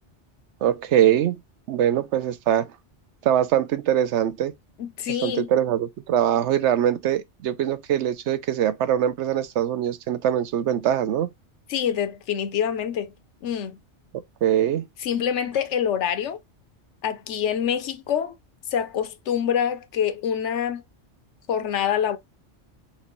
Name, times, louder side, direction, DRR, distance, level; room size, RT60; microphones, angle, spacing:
voice 1, 0.6-1.3 1.7-2.7 3.2-4.5 5.2-11.3 14.4-14.9, right 10 dB, 80° right, 0.9 m, -22 dB
voice 2, 4.8-5.5 11.7-13.1 13.4-13.8 15.0-16.4 17.0-18.3 18.7-20.8 21.5-22.2, left 8 dB, 80° left, 1.0 m, -26 dB
5.9 x 2.6 x 3.0 m
omnidirectional pair, 1.2 m